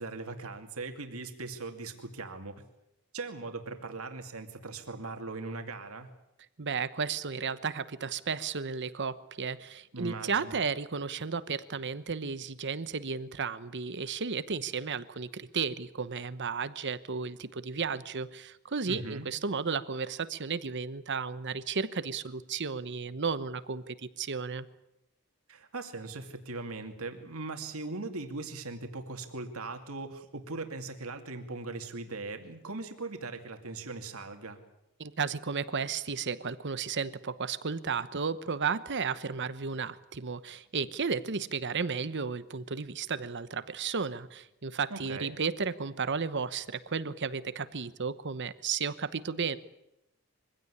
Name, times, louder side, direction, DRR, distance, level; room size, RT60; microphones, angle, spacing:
voice 1, 0.0-2.6 3.1-6.1 9.9-10.6 18.8-19.3 25.5-34.6 44.9-45.4, right 3 dB, 70° right, 6 dB, 2.5 m, -39 dB
voice 2, 6.6-24.6 35.0-49.6, right 5 dB, 55° right, 14 dB, 1.0 m, -33 dB
23.5 x 16.5 x 9.8 m, 0.87 s
head